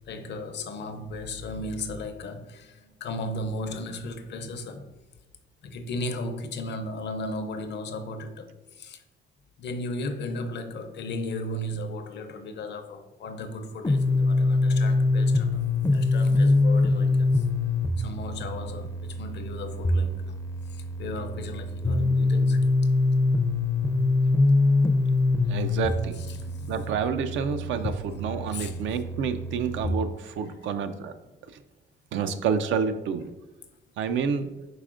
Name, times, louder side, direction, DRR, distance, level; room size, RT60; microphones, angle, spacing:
voice 1, 0.1-4.9 5.6-9.0 9.6-17.5 18.0-20.4 20.7-22.7 26.2-26.4 28.5-28.8, left 1 dB, 60° left, 0.6 m, -35 dB
sound 1, 13.8-29.9, left 2 dB, 15° left, 0.4 m, -24 dB
voice 2, 25.5-31.1 32.1-33.3 34.0-34.5, right 6 dB, 75° right, 0.4 m, -29 dB
4.8 x 4.1 x 2.4 m
cardioid pair, 90°, 20 cm